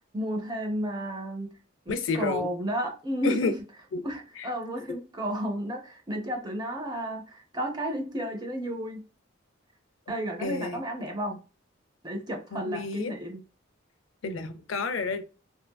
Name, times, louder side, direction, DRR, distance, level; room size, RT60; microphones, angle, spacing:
voice 1, 0.1-1.5 1.9-3.5 4.0-9.1 10.1-11.4 12.0-13.4, equal, 20° right, 2 dB, 0.5 m, -32 dB
voice 2, 1.9-2.5 3.2-3.5 3.9-4.0 4.4-4.5 10.4-10.8 12.5-13.1 14.2-15.2, left 4 dB, 75° left, 9 dB, 0.4 m, -30 dB
2.7 x 2.5 x 2.2 m, 0.33 s
head